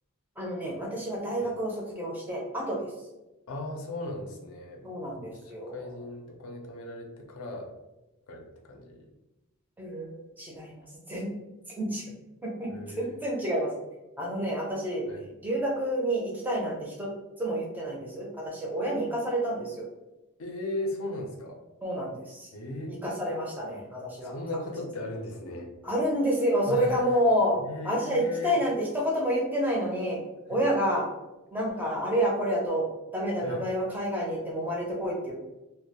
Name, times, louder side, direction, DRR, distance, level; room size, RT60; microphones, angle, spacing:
voice 1, 0.4-2.9 4.8-5.8 9.8-11.3 11.8-12.1 12.4-12.7 13.0-13.7 14.2-15.1 15.4-17.1 17.4-19.9 21.8-22.5 22.9-24.3 25.8-27.6 27.8-30.2 30.5-31.1 31.5-32.9 33.1-35.5, equal, 10° right, -2 dB, 0.4 m, -29 dB
voice 2, 3.5-4.8 5.4-7.7 8.3-9.1 12.7-13.2 15.1-15.3 20.4-21.6 22.5-23.0 24.2-25.8 26.7-27.1 27.6-28.6 33.4-33.7, left 2 dB, 70° left, 2 dB, 0.5 m, -37 dB
2.2 x 2.1 x 2.8 m, 1.0 s
head